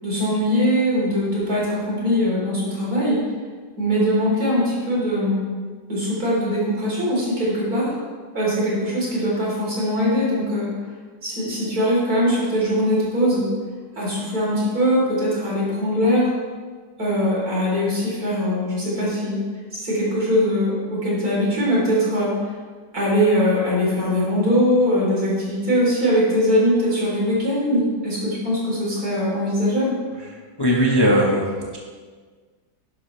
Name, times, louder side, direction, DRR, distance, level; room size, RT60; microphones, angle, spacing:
voice 1, 0.0-3.2 3.8-5.4 5.9-8.0 8.3-10.7 11.2-13.5 13.9-16.3 17.0-19.4 19.7-22.5 22.9-30.0, equal, 55° right, -6 dB, 4.3 m, -21 dB
voice 2, 30.6-31.8, equal, 15° left, -3 dB, 1.1 m, -19 dB
11.5 x 11.0 x 3.3 m, 1.5 s
omnidirectional pair, 1.9 m